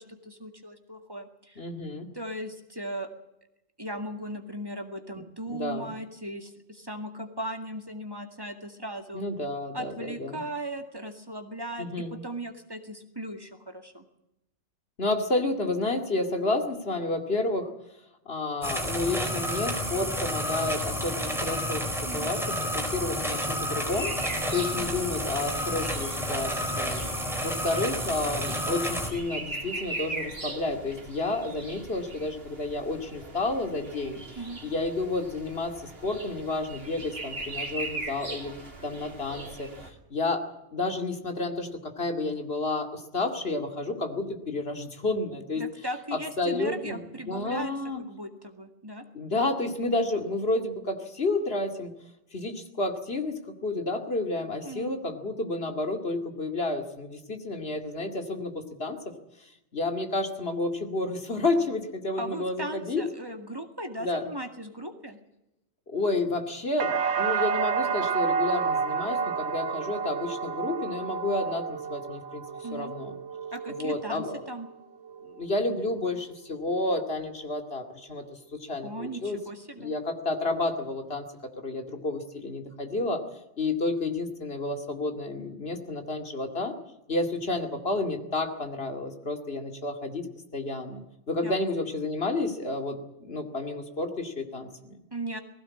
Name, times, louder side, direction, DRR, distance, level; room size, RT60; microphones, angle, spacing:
voice 1, 0.0-1.7 2.1-3.1 3.8-9.2 9.7-14.0 22.1-22.3 24.7-25.0 34.4-34.6 45.6-47.7 48.0-49.0 54.6-54.9 62.2-65.2 72.6-72.9 73.5-74.7 78.8-79.9 91.4-91.6 95.1-95.4, right 1 dB, 20° right, 6 dB, 2.1 m, -38 dB
voice 2, 1.6-2.1 5.5-5.9 9.1-10.4 11.8-12.2 15.0-17.7 18.3-24.1 24.5-27.1 27.4-34.2 34.6-38.5 38.8-39.7 40.1-45.6 46.1-48.0 49.1-51.9 52.3-59.0 59.7-63.0 64.0-64.2 65.9-72.4 72.7-73.1 73.7-74.4 75.2-78.2 78.5-79.4 79.8-81.3 81.6-83.2 83.6-86.7 87.1-90.3 90.5-91.0 91.3-95.0, left 2 dB, 60° left, 5 dB, 2.7 m, -30 dB
sound 1, 18.6-29.1, equal, ahead, 4.3 m, -30 dB
sound 2, 23.9-39.9, right 2 dB, 55° right, 3.0 m, -40 dB
sound 3, 66.8-74.7 75.1-75.7, right 6 dB, 75° right, 1.2 m, -30 dB
20.0 x 16.5 x 8.5 m, 0.87 s
omnidirectional pair, 1.2 m